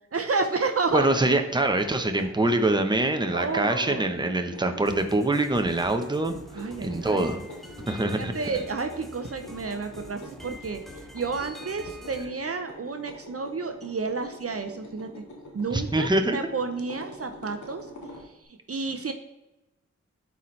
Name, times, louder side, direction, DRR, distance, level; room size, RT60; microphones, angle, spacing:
voice 1, 0.1-1.1 3.3-4.1 6.5-7.3 8.2-10.8 11.1-15.2 15.5-17.8 18.7-19.1, right 4 dB, 55° right, 6 dB, 0.7 m, -30 dB
sound 1, 0.8-18.3, left 1 dB, 85° left, 1.9 m, -45 dB
voice 2, 0.9-7.4 7.9-8.3 15.7-16.4, right 2 dB, 15° right, 6 dB, 0.9 m, -24 dB
sound 2, 4.9-12.2, equal, ahead, 1.2 m, -45 dB
11.0 x 4.4 x 3.2 m, 0.96 s
cardioid pair, 55°, 29 cm